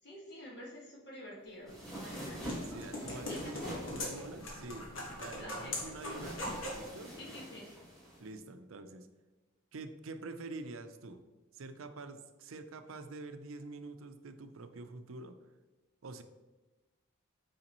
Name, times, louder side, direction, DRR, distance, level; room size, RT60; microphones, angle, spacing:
voice 1, 0.0-2.5 3.1-3.8 5.4-5.8 7.2-7.7, left 1 dB, 55° left, -3 dB, 1.7 m, -49 dB
sound 1, 1.6-6.9, left 1 dB, 75° left, 1.5 m, -42 dB
sound 2, 1.7-8.3, equal, ahead, 2.3 m, -46 dB
voice 2, 2.6-7.1 8.2-9.1 9.7-11.2 11.5-15.4 16.0-16.2, right 3 dB, 85° right, 9 dB, 0.6 m, -46 dB
8.8 x 4.9 x 3.0 m, 1.2 s
head